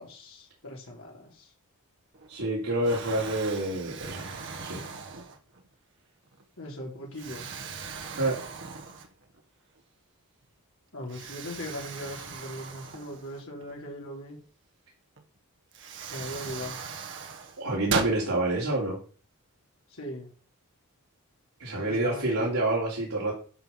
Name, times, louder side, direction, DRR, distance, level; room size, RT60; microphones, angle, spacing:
voice 1, 0.0-1.5 6.6-7.5 10.9-14.4 16.1-16.8 19.9-20.3 21.8-22.6, equal, 65° left, -1 dB, 3.9 m, -39 dB
Explosion, 2.1-2.5 2.8-5.7 6.3-6.4 7.1-9.4 9.8-9.9 11.1-13.7 15.2-15.3 15.7-18.2, right 5 dB, 55° right, 1.3 m, -38 dB
voice 2, 2.3-4.2 4.6-4.8 8.2-8.4 17.6-19.0 21.6-23.3, right 2 dB, 75° right, -5 dB, 3.3 m, -27 dB
11.0 x 5.5 x 5.7 m, 0.39 s
head